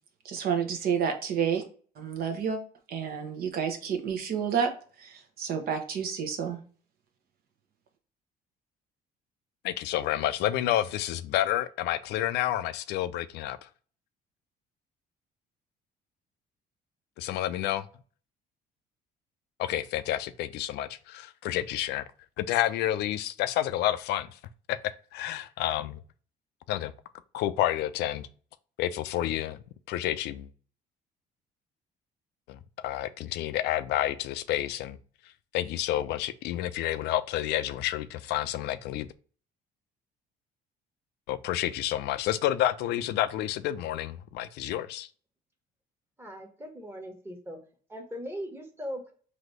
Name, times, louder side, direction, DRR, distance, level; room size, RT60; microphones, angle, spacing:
voice 1, 0.2-1.6 2.0-2.6 2.9-4.7 5.0-6.6, right 7 dB, 65° right, 0.9 m, -30 dB
voice 2, 9.6-13.7 17.2-17.9 19.6-22.1 22.4-24.4 24.7-24.8 25.1-26.0 26.7-26.9 27.3-28.3 28.8-29.6 29.9-30.5 32.5-35.0 35.5-39.1 41.3-45.1, left 13 dB, 80° left, 0.4 m, -29 dB
voice 3, 46.2-47.6 47.9-49.1, equal, 15° right, 1.2 m, -39 dB
4.0 x 2.7 x 3.1 m
cardioid pair, 110°, 17 cm